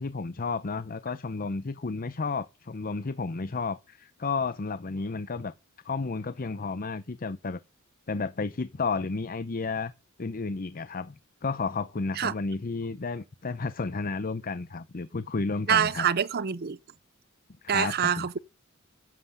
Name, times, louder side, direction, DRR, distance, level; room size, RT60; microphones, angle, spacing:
voice 1, 0.0-5.5 5.8-7.6 8.1-9.9 10.2-16.1 17.6-18.4, left 4 dB, 45° left, 0.7 m, -32 dB
voice 2, 15.7-16.8 17.7-18.4, right 8 dB, 50° right, 0.6 m, -25 dB
11.0 x 7.8 x 8.4 m
head